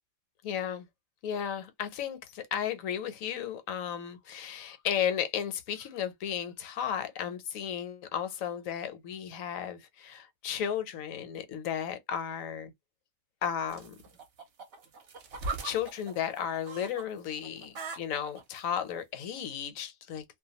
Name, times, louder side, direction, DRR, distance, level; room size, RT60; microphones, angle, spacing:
voice 1, 0.4-0.9 1.2-12.7 13.4-14.0 15.6-20.2, left 8 dB, 75° left, 1.1 m, -34 dB
sound 1, 13.7-17.1 17.4-18.6 19.4-19.5, right 3 dB, 55° right, 0.9 m, -40 dB
2.5 x 2.3 x 2.8 m
omnidirectional pair, 1.4 m